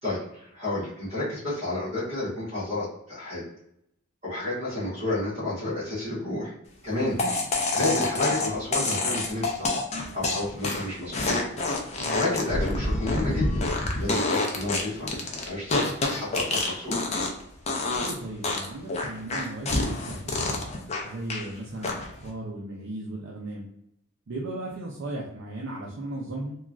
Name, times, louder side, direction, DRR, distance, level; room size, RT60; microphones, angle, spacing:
voice 1, 0.0-3.4 4.2-6.5 6.8-7.2 7.7-9.8 10.1-11.4 12.1-13.6 13.9-15.1 15.4-17.0, left 2 dB, 35° right, -10 dB, 1.3 m, -31 dB
sound 1, 7.2-17.4 17.7-18.1 18.4-21.5 21.8-22.3, left 2 dB, 30° left, 0.5 m, -27 dB
voice 2, 17.9-20.6 21.0-23.7 24.3-26.5, right 2 dB, 60° right, -3 dB, 0.5 m, -36 dB
3.0 x 2.3 x 2.5 m, 0.77 s
head